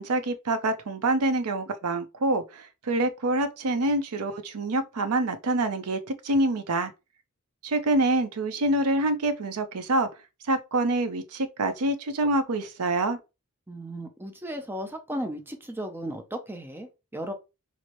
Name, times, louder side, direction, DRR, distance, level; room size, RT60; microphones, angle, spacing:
voice 1, 0.0-6.9 7.6-10.1 10.5-13.2, right 2 dB, 80° right, 0.6 m, -26 dB
voice 2, 13.7-17.3, equal, 10° right, 0.6 m, -35 dB
4.5 x 2.0 x 3.0 m
head